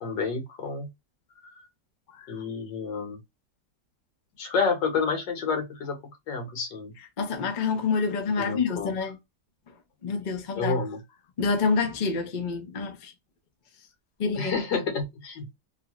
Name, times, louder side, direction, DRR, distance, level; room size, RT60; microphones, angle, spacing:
voice 1, 0.0-0.9 1.4-1.6 2.3-3.2 4.4-6.0 6.3-6.9 8.4-8.9 10.5-11.0 14.4-15.5, left 4 dB, 85° left, 1.8 m, -29 dB
voice 2, 7.2-9.2 10.0-10.8 11.4-13.1 14.2-14.5, left 4 dB, 45° left, 0.6 m, -27 dB
3.6 x 2.4 x 2.9 m
omnidirectional pair, 1.9 m